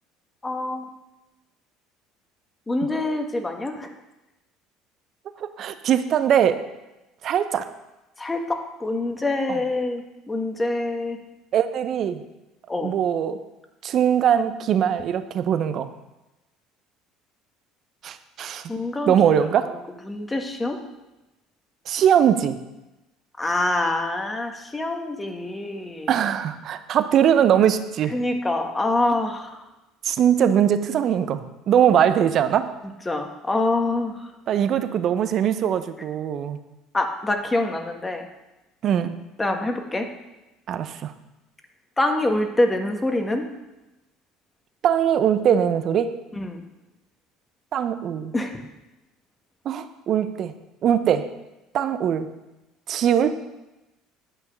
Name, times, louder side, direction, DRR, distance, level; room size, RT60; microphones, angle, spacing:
voice 1, 0.4-0.9 2.7-3.9 8.2-11.2 12.7-12.9 18.7-19.1 20.1-20.8 23.4-26.1 28.1-29.6 33.0-34.3 36.9-38.3 39.4-40.1 42.0-43.4 46.3-46.6 48.3-48.6, left 2 dB, 15° left, 5 dB, 1.6 m, -25 dB
voice 2, 5.6-6.6 7.2-7.6 9.5-9.6 11.5-12.2 12.8-13.4 13.8-15.9 18.0-18.7 19.1-19.8 21.9-22.6 26.1-28.1 30.0-32.7 34.5-36.6 38.8-39.1 40.7-41.1 44.8-46.2 47.7-48.3 49.6-50.6 50.8-51.3 51.7-52.3 52.9-53.4, right 9 dB, 50° right, 11 dB, 0.8 m, -21 dB
9.8 x 5.7 x 6.8 m, 1.0 s
hypercardioid pair, 65°, 0 cm